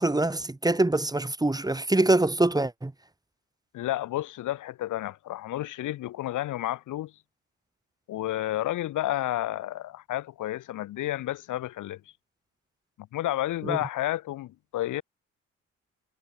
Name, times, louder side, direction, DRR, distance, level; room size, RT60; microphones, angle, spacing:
voice 1, 0.0-2.9 13.6-13.8, right 2 dB, 10° right, 3.6 m, -24 dB
voice 2, 3.7-7.1 8.1-12.0 13.1-15.0, left 14 dB, 85° left, 4.1 m, -31 dB
cardioid pair, 90°, 30 cm